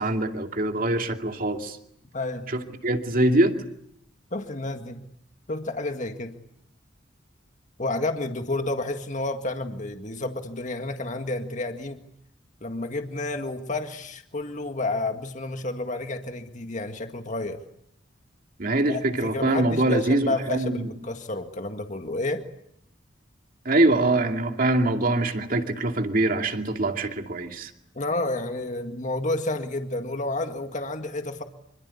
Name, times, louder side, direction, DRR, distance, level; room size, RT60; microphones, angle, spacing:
voice 1, 0.0-1.8 2.5-3.5 18.6-20.9 23.6-27.7, right 2 dB, 45° right, 5 dB, 2.5 m, -24 dB
voice 2, 2.1-2.5 4.3-5.0 5.5-6.3 7.8-12.0 12.6-17.6 18.9-22.5 28.0-31.4, left 2 dB, 40° left, 6 dB, 1.9 m, -30 dB
26.0 x 25.0 x 8.4 m, 0.74 s
head